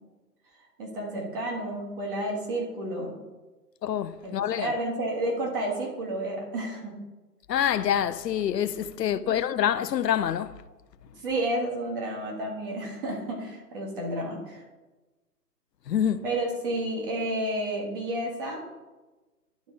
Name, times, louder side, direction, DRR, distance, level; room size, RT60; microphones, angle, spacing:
voice 1, 0.8-3.1 4.2-6.9 9.2-9.4 11.2-14.6 16.2-18.6, right 1 dB, 35° right, 1.8 m, -31 dB
voice 2, 3.8-4.7 7.5-10.5 15.9-16.2, left 9 dB, 80° left, 0.6 m, -26 dB
11.5 x 4.0 x 3.8 m
hypercardioid pair, 155°, 48 cm